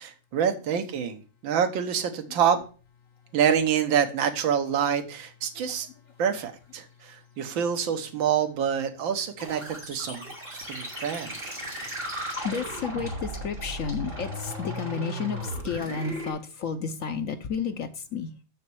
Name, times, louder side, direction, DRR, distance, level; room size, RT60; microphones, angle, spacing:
voice 1, 0.0-2.6 3.3-5.9 6.2-10.2 10.7-11.5, right 8 dB, 70° right, 6 dB, 1.9 m, -26 dB
sound 1, 9.4-16.3, equal, 20° right, 5.6 m, -36 dB
voice 2, 11.6-12.0 12.4-18.3, left 6 dB, 70° left, 8 dB, 0.7 m, -32 dB
6.5 x 6.5 x 6.9 m, 0.38 s
omnidirectional pair, 2.3 m